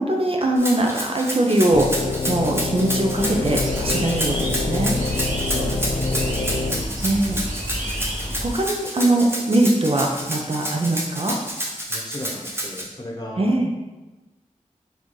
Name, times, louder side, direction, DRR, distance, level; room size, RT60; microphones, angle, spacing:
voice 1, 0.0-4.9 7.0-7.4 8.4-11.3 13.4-13.7, right 1 dB, 45° right, 0 dB, 0.5 m, -21 dB
Rattle (instrument), 0.6-12.8, equal, 20° right, 0.9 m, -29 dB
sound 1, 1.7-6.9, left 3 dB, 50° left, 0.4 m, -26 dB
sound 2, 3.1-8.5, equal, 80° right, 0.7 m, -30 dB
voice 2, 5.5-6.3 11.9-13.5, left 1 dB, 30° left, -2 dB, 0.8 m, -35 dB
4.0 x 2.6 x 3.1 m, 1.1 s
wide cardioid pair, 50°, 13 cm